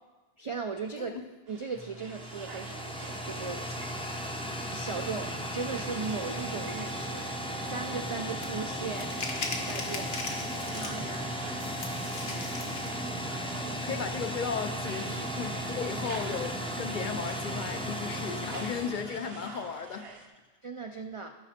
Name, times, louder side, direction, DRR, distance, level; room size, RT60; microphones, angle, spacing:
voice 1, 0.4-1.1 1.5-4.1 4.7-7.3 7.6-9.1 9.5-10.2 10.7-11.3 13.6-14.0 20.6-21.4, right 4 dB, 55° right, 5 dB, 0.3 m, -38 dB
sound 1, 1.5-20.3, right 4 dB, 75° right, 1.0 m, -50 dB
sound 2, 1.7-19.9, equal, 5° left, 0.5 m, -36 dB
sound 3, 8.4-8.5 8.9-11.2 11.6-13.0, left 3 dB, 75° left, 1.2 m, -38 dB
voice 2, 13.8-20.1, left 6 dB, 60° left, 8 dB, 0.6 m, -35 dB
13.5 x 5.0 x 4.2 m, 1.2 s
omnidirectional pair, 1.1 m